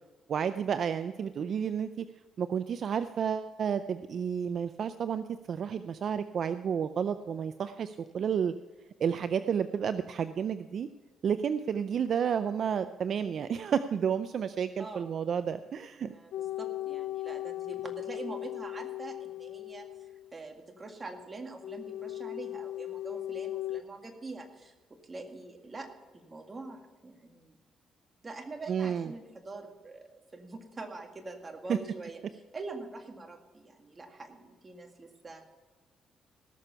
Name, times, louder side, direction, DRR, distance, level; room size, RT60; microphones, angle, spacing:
voice 1, 0.3-2.1 2.4-8.5 9.0-10.9 11.2-16.1 28.7-29.1 31.7-31.8, right 7 dB, 60° right, 11 dB, 0.4 m, -31 dB
voice 2, 16.0-27.6 28.2-35.4, right 3 dB, 25° right, 4 dB, 2.0 m, -44 dB
sound 1, 16.3-20.3 21.6-23.8, left 14 dB, 85° left, 0.5 m, -38 dB
18.0 x 6.9 x 5.6 m, 1.2 s
cardioid pair, 90°, 0 cm